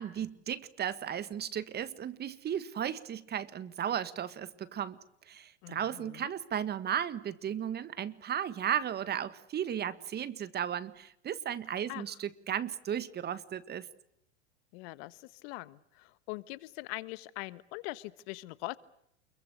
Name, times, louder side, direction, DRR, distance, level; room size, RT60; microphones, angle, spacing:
voice 1, 0.0-5.0 5.3-13.9, right 9 dB, 30° right, 15 dB, 1.6 m, -35 dB
voice 2, 5.6-6.3 11.9-12.0 14.7-18.8, left 21 dB, 55° left, 16 dB, 1.5 m, -42 dB
29.0 x 22.5 x 8.1 m, 0.74 s
hypercardioid pair, 110°, 35 cm